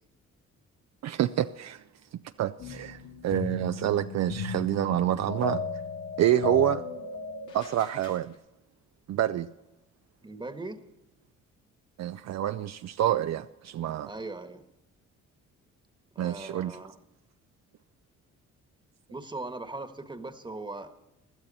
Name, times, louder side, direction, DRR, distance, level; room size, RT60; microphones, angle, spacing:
voice 1, 1.0-1.8 2.4-5.6 6.2-6.8 7.5-8.3 9.1-9.5 12.0-14.1 16.2-16.8, right 12 dB, 60° right, 10 dB, 0.5 m, -27 dB
sound 1, 2.6-8.2, left 4 dB, 80° left, 2.4 m, -35 dB
voice 2, 10.2-10.8 14.0-14.6 16.1-17.0 19.1-20.9, right 2 dB, 15° right, 8 dB, 1.4 m, -39 dB
16.5 x 12.0 x 4.1 m, 0.92 s
cardioid pair, 90°, 30 cm